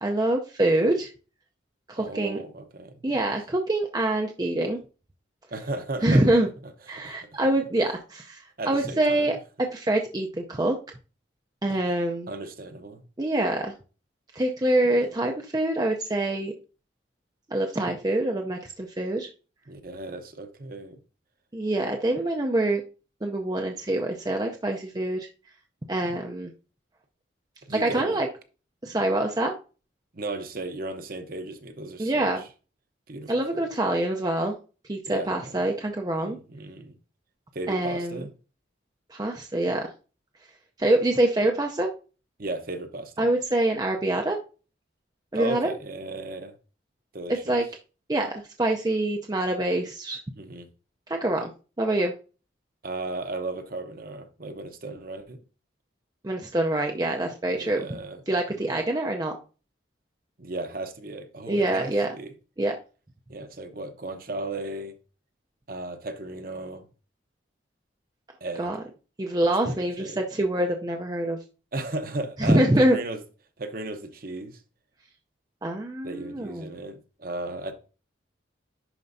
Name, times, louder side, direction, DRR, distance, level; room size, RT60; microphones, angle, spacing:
voice 1, 0.0-1.1 1.9-2.4 3.0-4.8 6.0-6.5 6.9-9.4 9.7-10.8 11.6-12.3 13.2-13.7 14.3-16.5 17.5-19.3 21.5-22.8 23.2-25.3 25.9-26.5 27.8-28.3 28.8-29.5 32.0-32.4 33.3-34.6 34.9-36.4 37.7-38.2 39.1-39.9 40.8-41.9 43.2-44.4 45.3-45.7 47.5-47.6 48.1-50.2 51.1-51.5 51.8-52.1 56.2-58.0 58.3-59.3 61.5-62.1 62.6-62.8 68.6-68.8 69.2-71.4 72.4-73.0 75.6-76.7, right 1 dB, 20° right, 0.5 m, -25 dB
voice 2, 2.0-3.3 5.5-6.3 6.9-7.1 8.6-9.3 12.3-13.0 14.9-15.0 19.7-21.0 27.7-28.2 30.1-32.5 33.1-33.7 35.1-35.6 36.2-37.0 37.5-38.3 42.4-43.3 45.3-46.5 47.1-47.6 50.4-50.7 52.8-55.4 57.5-58.2 58.5-58.8 60.4-62.3 63.3-65.0 65.7-66.9 68.4-68.7 69.4-70.2 71.7-73.2 73.6-74.6 76.0-77.7, right 2 dB, 45° right, 0.8 m, -35 dB
11.0 x 4.5 x 2.6 m
head